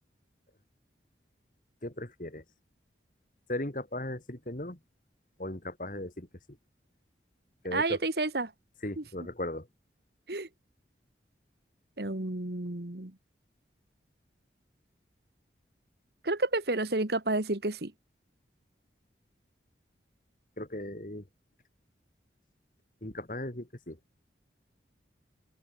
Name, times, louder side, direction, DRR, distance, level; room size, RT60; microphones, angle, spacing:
voice 1, 1.8-2.4 3.5-4.8 5.4-6.6 7.6-8.0 8.8-9.7 20.6-21.3 23.0-24.1, left 1 dB, 45° left, 2.4 m, -37 dB
voice 2, 7.7-8.5 9.0-9.1 10.3-10.5 12.0-13.1 16.2-17.9, right 2 dB, 60° right, 1.8 m, -30 dB
open air
head